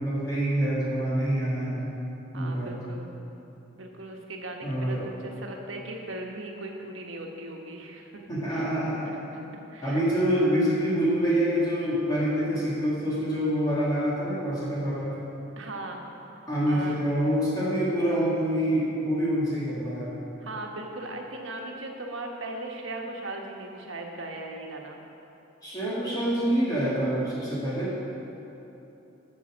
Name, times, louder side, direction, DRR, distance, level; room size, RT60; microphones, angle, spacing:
voice 1, 0.0-1.8 2.3-2.7 4.6-5.1 8.3-9.2 9.8-15.2 16.5-20.1 25.6-28.0, equal, 20° left, -8 dB, 2.0 m, -26 dB
voice 2, 2.3-3.1 3.7-8.1 8.5-8.7 9.0-10.0 15.6-16.0 16.7-17.1 20.4-25.0, right 2 dB, 80° right, 1 dB, 1.2 m, -38 dB
9.6 x 6.9 x 6.1 m, 3.0 s
head